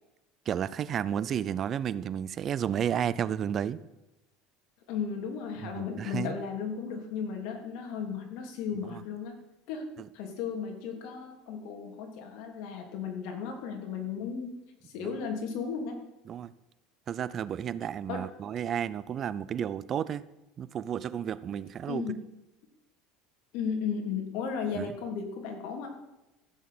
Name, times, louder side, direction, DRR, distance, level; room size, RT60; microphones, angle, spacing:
voice 1, 0.5-3.8 5.6-6.4 8.8-9.0 10.0-10.1 15.0-15.1 16.3-16.5 17.1-20.3 20.6-22.2 24.7-24.9, right 9 dB, 30° right, 17 dB, 0.5 m, -32 dB
voice 2, 4.9-9.4 9.7-9.8 10.1-14.6 14.8-16.1 18.1-18.2 21.9-22.2 23.5-25.9, left 6 dB, 65° left, 2 dB, 3.2 m, -35 dB
15.0 x 6.4 x 8.6 m, 0.96 s
cardioid pair, 155°, 0 cm